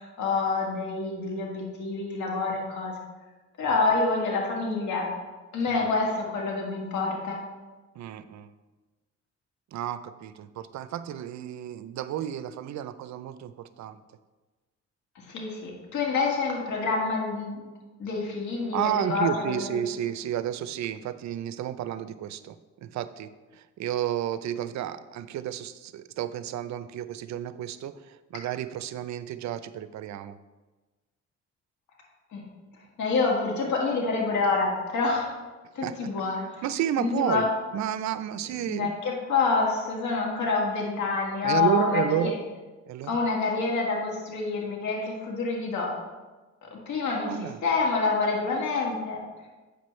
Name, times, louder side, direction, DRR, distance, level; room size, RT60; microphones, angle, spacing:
voice 1, 0.0-2.9 3.6-5.1 5.5-7.4 15.2-17.6 18.0-19.8 32.3-32.4 33.0-35.3 35.7-36.6 37.0-37.5 38.7-42.3 43.0-45.9 46.7-49.2, left 4 dB, 70° left, -2 dB, 1.8 m, -27 dB
voice 2, 8.0-8.5 9.7-14.0 18.7-30.4 35.8-36.1 36.6-37.5 37.7-38.9 41.4-42.3 42.9-43.1 47.2-47.6, right 10 dB, 65° right, 13 dB, 0.5 m, -31 dB
8.3 x 6.0 x 3.2 m, 1.2 s
cardioid pair, 90°, 30 cm